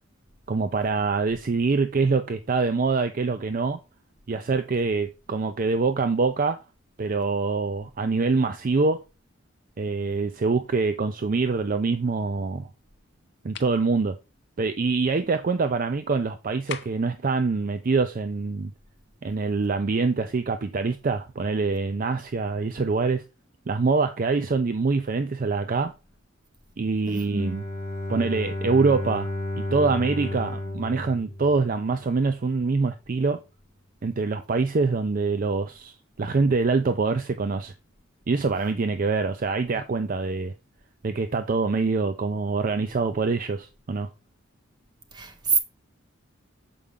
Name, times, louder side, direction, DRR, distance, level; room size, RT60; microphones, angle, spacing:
voice 1, 0.5-3.8 4.3-6.6 7.0-9.0 9.8-12.7 13.4-14.2 14.6-18.7 19.2-23.2 23.7-25.9 26.8-27.6 28.1-29.3 29.7-33.4 34.0-37.7 38.3-40.5 41.0-44.1, right 4 dB, 40° right, 0.4 m, -25 dB
sound 1, 13.5-13.8 16.7-17.2, left 8 dB, 55° left, 0.6 m, -38 dB
voice 2, 27.1-27.6 45.1-45.6, right 4 dB, 20° right, 1.0 m, -26 dB
Bowed string instrument, 27.3-32.1, left 1 dB, 30° left, 2.3 m, -32 dB
6.9 x 4.8 x 3.5 m
head